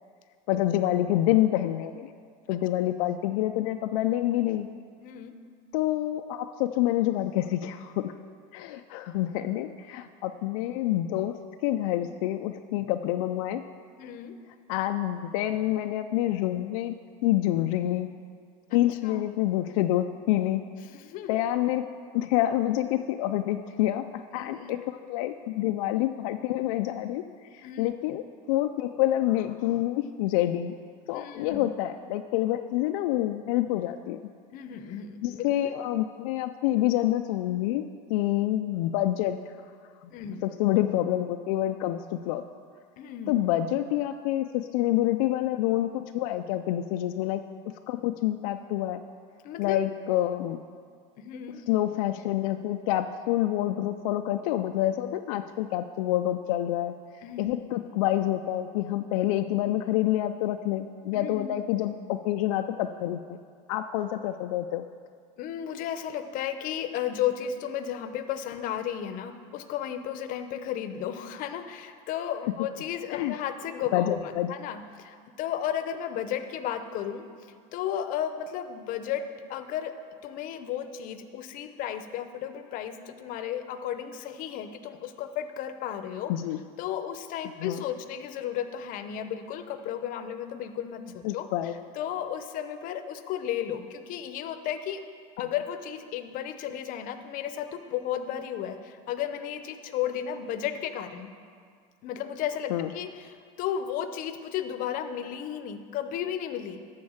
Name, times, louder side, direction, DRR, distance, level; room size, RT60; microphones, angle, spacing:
voice 1, 0.5-2.1 2.5-4.7 5.7-8.1 8.5-11.4 11.6-13.6 14.7-16.9 17.2-18.1 18.7-20.6 21.3-21.9 22.1-27.2 27.5-30.7 31.1-34.2 35.2-39.4 40.4-42.4 43.3-49.0 49.6-50.6 51.7-56.9 57.4-63.4 63.7-64.9 73.1-73.3 73.9-74.5 86.3-86.6 87.6-87.8 91.2-91.7 102.7-102.9, left 13 dB, 80° left, 6 dB, 0.4 m, -27 dB
voice 2, 5.0-5.4 14.0-14.4 18.7-19.2 20.9-21.4 24.3-24.7 27.6-27.9 31.1-31.7 34.5-35.5 40.1-40.4 43.0-43.4 49.4-49.8 51.2-51.6 57.2-57.6 61.1-61.6 65.4-77.3 77.7-79.2 79.5-79.9 80.2-86.3 86.8-95.0 95.4-101.3 102.0-106.8, left 10 dB, 50° left, 9 dB, 0.8 m, -34 dB
13.0 x 4.5 x 7.2 m, 2.1 s
supercardioid pair, 130°, 17 cm